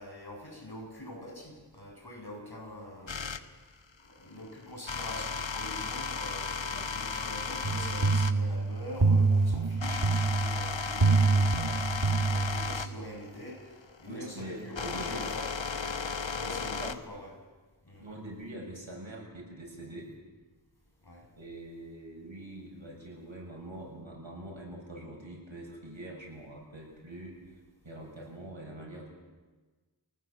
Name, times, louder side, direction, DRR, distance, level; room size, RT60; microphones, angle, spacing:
voice 1, 0.0-3.4 4.1-15.5 15.7-16.0 16.4-17.3 17.9-18.1 21.0-21.3, left 1 dB, 55° left, 0 dB, 7.7 m, -44 dB
sound 1, 3.1-3.4 4.9-8.4 9.0-16.9, left 5 dB, 80° left, 1.2 m, -35 dB
sound 2, 7.6-12.9, right 3 dB, 65° right, 2.4 m, -26 dB
voice 2, 14.1-15.3 16.4-16.9 18.0-20.1 21.4-29.1, right 1 dB, 85° right, -2 dB, 7.0 m, -44 dB
28.0 x 19.5 x 7.9 m, 1.3 s
wide cardioid pair, 40°, 45 cm